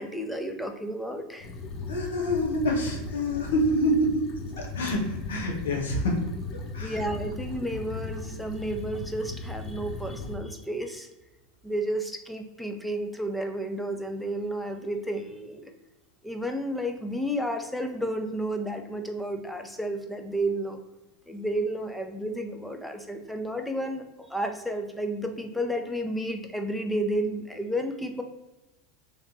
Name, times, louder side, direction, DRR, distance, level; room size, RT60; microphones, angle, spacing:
voice 1, 0.0-1.5 6.8-11.1 11.6-15.7 16.2-20.8 21.3-24.0 24.3-28.2, right 1 dB, ahead, 5 dB, 0.6 m, -31 dB
sound 1, 1.4-10.4, left 3 dB, 40° left, 0.9 m, -37 dB
voice 2, 1.7-4.2 4.6-6.2 6.5-7.0, equal, 90° left, 0 dB, 1.1 m, -27 dB
3.2 x 3.0 x 4.0 m, 1.0 s
supercardioid pair, 110°, 0 cm